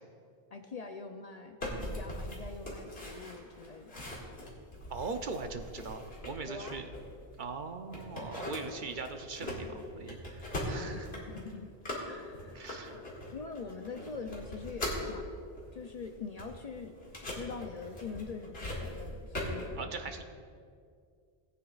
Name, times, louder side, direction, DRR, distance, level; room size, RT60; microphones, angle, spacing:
voice 1, 0.5-4.0 6.5-6.8 10.8-11.7 12.0-15.3 15.7-19.9, left 4 dB, 50° left, 5 dB, 0.6 m, -44 dB
sound 1, 1.6-7.5 7.9-15.1 15.6-19.7, left 1 dB, 80° left, 2.4 m, -41 dB
voice 2, 4.9-6.9 7.4-11.1 12.5-13.0 19.8-20.2, right 4 dB, 55° right, 6 dB, 0.8 m, -40 dB
18.0 x 9.3 x 2.4 m, 2.2 s
omnidirectional pair, 1.0 m